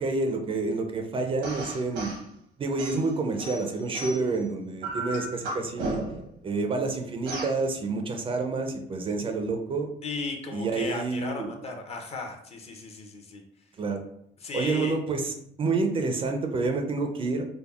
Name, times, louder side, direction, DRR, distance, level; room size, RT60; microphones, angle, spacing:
voice 1, 0.0-2.1 2.6-6.0 6.4-9.9 10.5-11.5 13.8-14.0 14.5-17.6, right 3 dB, 30° right, 4 dB, 0.4 m, -28 dB
sound 1, 1.4-2.2 2.8-4.4 4.8-6.3 7.3-7.6, right 2 dB, 85° right, 0.9 m, -34 dB
voice 2, 10.0-13.4 14.4-15.0, left 3 dB, 40° left, 4 dB, 0.5 m, -36 dB
3.4 x 2.0 x 2.3 m, 0.70 s
cardioid pair, 110°, 17 cm